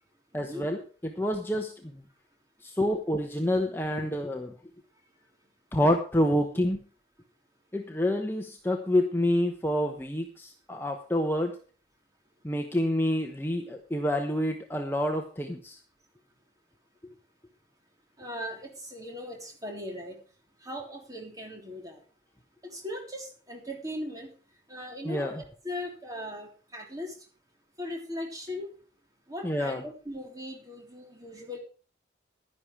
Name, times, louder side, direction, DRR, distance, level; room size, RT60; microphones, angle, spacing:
voice 1, 0.3-2.0 2.6-4.5 5.7-6.8 7.7-11.6 12.4-15.8 25.0-25.4 29.4-29.8, left 1 dB, 10° left, 3 dB, 1.0 m, -28 dB
voice 2, 18.2-20.2 20.6-22.0 22.6-24.3 24.7-27.2 27.8-28.7 29.3-31.6, left 1 dB, 20° right, 2 dB, 3.3 m, -39 dB
11.5 x 11.0 x 4.7 m, 0.38 s
head